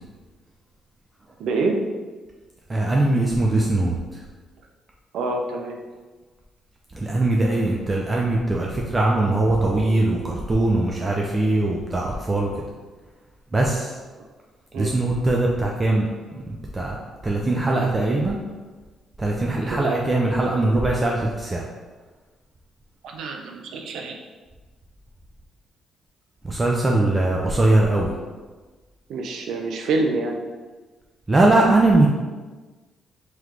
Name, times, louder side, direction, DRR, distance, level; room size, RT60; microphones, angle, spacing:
voice 1, 1.4-1.8 5.1-5.8 14.7-14.9 19.7-20.0 23.0-24.2 29.1-30.4, right 3 dB, 75° right, 2 dB, 0.5 m, -26 dB
voice 2, 2.7-4.2 6.9-12.5 13.5-14.0 14.8-17.0 17.2-18.4 19.2-21.6 26.4-28.1 31.3-32.1, right 2 dB, 25° right, -1 dB, 0.5 m, -21 dB
3.2 x 3.1 x 3.7 m, 1.3 s
cardioid pair, 90°, 0 cm